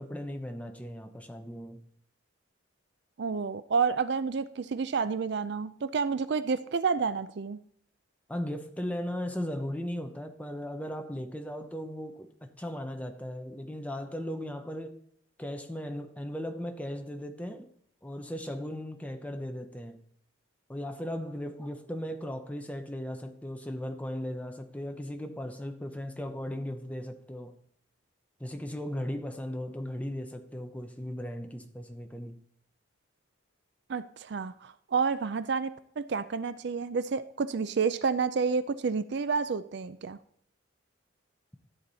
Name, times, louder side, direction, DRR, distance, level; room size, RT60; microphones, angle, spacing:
voice 1, 0.0-1.8 8.3-15.0 15.4-17.7 18.0-20.0 20.7-27.5 28.4-32.4, equal, 5° left, 0.8 m, -37 dB
voice 2, 3.2-7.6 33.9-34.5 34.9-40.2, right 5 dB, 55° right, 0.4 m, -29 dB
13.0 x 8.5 x 4.1 m
head